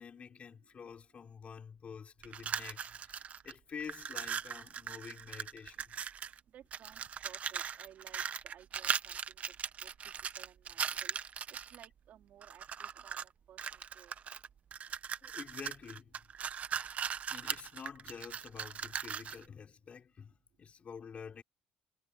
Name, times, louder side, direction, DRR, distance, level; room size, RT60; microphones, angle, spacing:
voice 1, 0.0-5.9 15.2-16.1 17.3-21.4, left 6 dB, 40° left, 4.4 m, -48 dB
sound 1, 2.2-3.5 3.8-6.4 6.7-11.9 12.4-13.3 13.6-19.4, right 8 dB, 45° right, 1.0 m, -39 dB
voice 2, 6.5-9.4 9.8-13.2 13.5-14.1, right 11 dB, 65° right, 3.8 m, -58 dB
cardioid pair, 100°, 3 cm